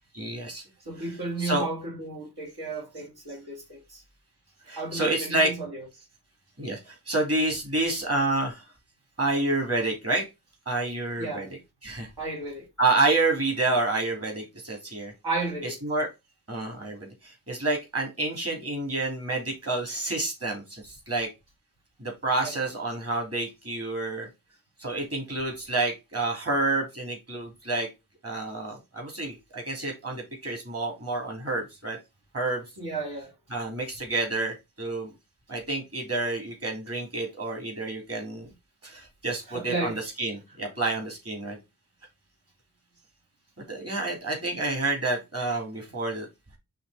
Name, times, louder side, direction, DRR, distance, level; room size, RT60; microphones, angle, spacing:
voice 1, 0.1-0.6 1.4-1.6 4.7-5.5 6.6-8.6 9.2-10.2 10.7-11.5 11.8-12.1 12.8-15.1 15.6-16.1 16.5-21.3 22.0-24.3 24.8-27.9 28.2-32.0 32.3-32.6 33.5-35.1 35.5-38.5 38.8-41.6 43.7-46.3, right 2 dB, 40° right, 3.0 m, -29 dB
voice 2, 0.9-4.0 4.8-5.9 11.2-11.5 12.2-12.7 15.2-15.8 22.4-22.6 32.8-33.3 39.5-40.0, right 2 dB, 80° right, 2.7 m, -33 dB
5.7 x 3.5 x 4.9 m
wide cardioid pair, 90°, 38 cm